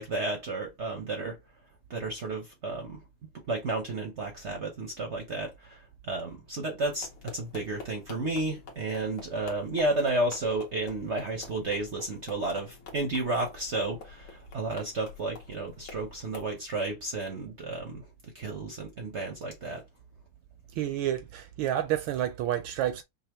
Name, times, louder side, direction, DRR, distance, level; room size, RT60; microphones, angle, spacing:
voice 1, 0.0-1.4 1.9-3.0 3.5-7.1 7.3-18.0 18.3-19.8, right 2 dB, 55° right, 0.8 m, -32 dB
sound 1, 6.8-16.5, left 4 dB, 70° left, 1.8 m, -48 dB
voice 2, 20.8-23.0, right 12 dB, 75° right, 1.3 m, -29 dB
5.5 x 2.1 x 3.0 m
omnidirectional pair, 2.3 m